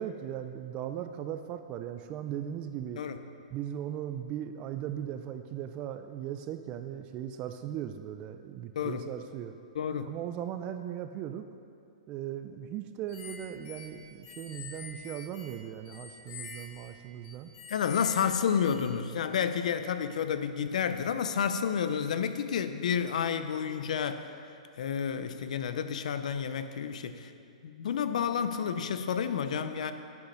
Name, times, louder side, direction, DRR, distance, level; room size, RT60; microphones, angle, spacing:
voice 1, 0.0-3.0 3.5-9.5 10.1-11.4 12.1-17.5, right 10 dB, 30° right, 8 dB, 0.3 m, -38 dB
voice 2, 9.7-10.1 17.7-24.3 24.8-27.3 27.6-29.9, left 7 dB, 70° left, 10 dB, 0.6 m, -30 dB
sound 1, 13.1-19.0, left 5 dB, 35° left, 1.2 m, -47 dB
8.4 x 6.5 x 5.6 m, 2.4 s
hypercardioid pair, 150°, 4 cm